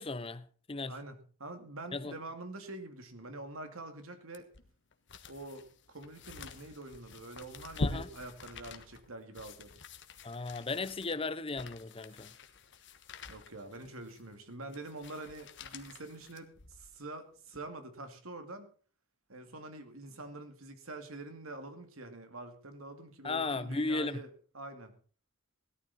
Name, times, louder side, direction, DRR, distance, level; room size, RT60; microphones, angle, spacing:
voice 1, 0.0-0.9 1.9-2.2 7.8-8.1 10.2-12.3 23.2-24.2, left 3 dB, 25° left, 0.7 m, -36 dB
voice 2, 0.8-4.5 5.3-9.7 13.3-18.7 19.3-24.9, right 2 dB, 85° right, 2.3 m, -46 dB
sound 1, 4.3-17.0 17.5-17.6, left 2 dB, 60° left, 1.4 m, -45 dB
17.5 x 12.0 x 4.2 m
head